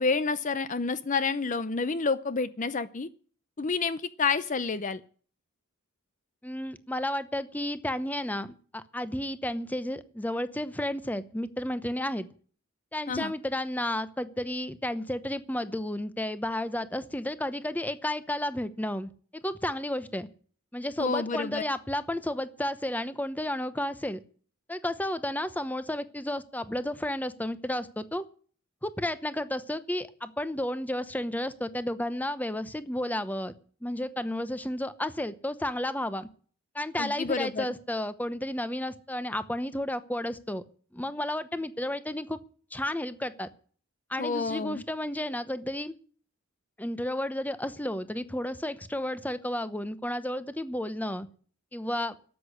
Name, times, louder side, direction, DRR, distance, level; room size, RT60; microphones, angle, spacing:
voice 1, 0.0-3.1 3.6-5.0 13.1-13.3 21.0-21.6 37.0-37.7 44.2-44.8, left 4 dB, 35° left, 14 dB, 0.6 m, -29 dB
voice 2, 6.4-12.3 12.9-20.3 20.7-24.2 24.7-28.2 28.8-33.5 33.8-36.3 36.7-40.6 40.9-42.4 42.7-43.5 44.1-46.0 46.8-51.3 51.7-52.1, left 1 dB, 10° left, 13 dB, 0.9 m, -32 dB
13.0 x 8.4 x 9.9 m, 0.43 s
head